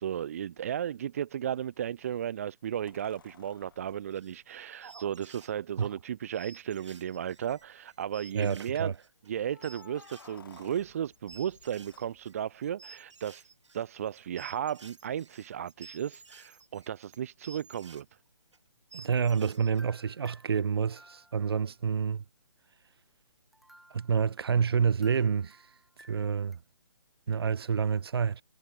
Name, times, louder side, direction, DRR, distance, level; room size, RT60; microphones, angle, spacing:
voice 1, 0.0-8.9 9.3-13.5 13.7-18.1, right 9 dB, 30° right, 1.9 m, -35 dB
sound 1, 0.6-0.7 2.9-5.3 6.2-6.3 6.6-6.7 7.3-7.7 9.4-12.6 15.1-15.2, left 6 dB, 50° left, 4.8 m, -57 dB
sound 2, 3.9-4.5 4.8-5.9 6.3-18.0 18.5-18.6 18.9-19.8, right 4 dB, 80° right, 5.7 m, -53 dB
voice 2, 8.3-8.9 18.9-22.2 23.9-25.6 26.1-26.6 27.3-28.4, right 6 dB, 55° right, 0.6 m, -28 dB
sound 3, 19.8-21.7 23.5-26.6, right 1 dB, ahead, 2.3 m, -58 dB
hypercardioid pair, 170°, 15 cm